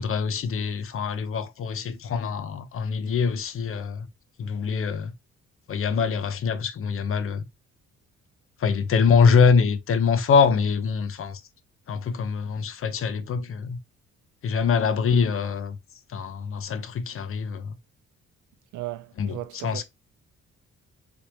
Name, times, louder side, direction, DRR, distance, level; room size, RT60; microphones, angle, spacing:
voice 1, 0.0-4.1 4.4-5.1 5.7-7.4 8.6-11.4 11.9-13.8 14.4-15.8 16.1-17.8 19.2-19.8, left 5 dB, 45° left, 0.6 m, -24 dB
voice 2, 18.7-19.8, right 15 dB, 75° right, 0.5 m, -36 dB
3.4 x 2.8 x 3.1 m
cardioid pair, 90°, 30 cm